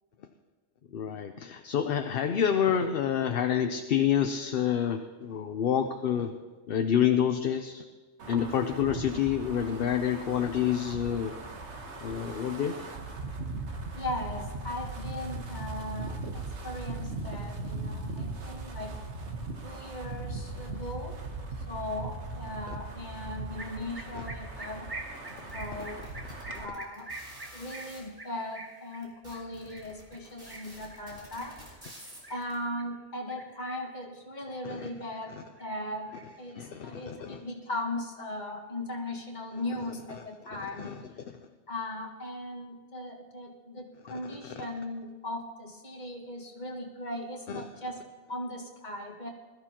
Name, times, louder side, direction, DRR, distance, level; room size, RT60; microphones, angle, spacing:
voice 1, 0.9-6.3 6.7-7.8 8.3-11.3 12.0-12.8 24.1-24.2 26.5-26.6 34.6-34.9 36.5-37.4 40.5-41.4 44.1-44.7 47.5-47.7, left 9 dB, 60° left, 6 dB, 0.8 m, -28 dB
Wind, 8.2-26.7, right 3 dB, 80° right, 1.5 m, -39 dB
voice 2, 14.0-19.0 19.6-21.2 21.7-24.9 25.5-26.0 26.5-27.1 27.5-31.8 32.3-36.1 36.4-40.9 41.7-49.3, left 1 dB, 40° left, 0 dB, 1.8 m, -38 dB
sound 1, 23.6-32.9 33.3-34.0 34.4-35.3 35.6-36.9, right 2 dB, 20° right, 1.0 m, -46 dB
sound 2, 25.2-28.0 28.7-28.8 29.0-32.5, right 1 dB, 60° right, 3.8 m, -49 dB
21.0 x 13.5 x 2.9 m, 1.3 s
omnidirectional pair, 1.2 m